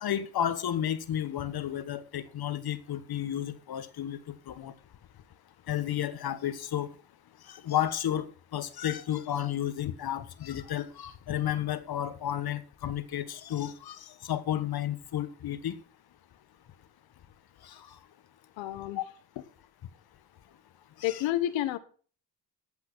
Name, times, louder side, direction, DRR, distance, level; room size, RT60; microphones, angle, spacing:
voice 1, 0.0-4.7 5.7-6.9 7.5-8.3 8.5-15.8 17.6-17.9 19.0-19.1 21.0-21.2, left 11 dB, 55° left, 1.4 m, -32 dB
voice 2, 18.6-19.0 21.0-21.8, left 13 dB, 85° left, 1.2 m, -29 dB
14.5 x 5.7 x 6.2 m
supercardioid pair, 75°, 44 cm